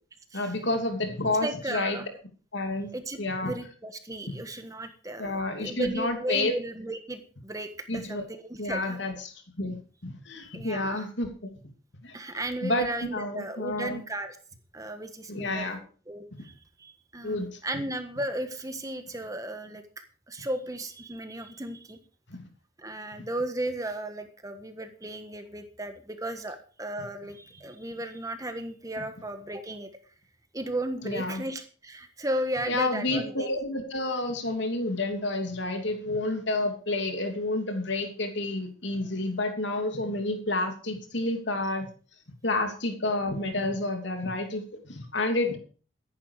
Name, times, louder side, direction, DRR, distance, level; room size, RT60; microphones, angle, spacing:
voice 1, 0.3-2.0 2.5-2.9 3.2-3.5 5.2-6.5 7.9-8.2 8.6-9.8 10.0-11.5 12.0-12.1 12.6-14.0 15.3-15.8 17.2-17.6 22.3-22.4 23.1-23.2 29.0-29.1 31.0-31.4 32.7-41.9 42.4-44.6 44.9-45.6, left 2 dB, 65° left, 5 dB, 3.0 m, -30 dB
voice 2, 1.4-2.1 2.9-9.0 10.5-11.1 12.1-14.4 14.7-15.7 16.1-19.8 20.3-22.0 22.8-29.9 30.5-33.5, right 1 dB, 15° right, 8 dB, 1.4 m, -35 dB
15.0 x 11.0 x 4.8 m, 0.39 s
head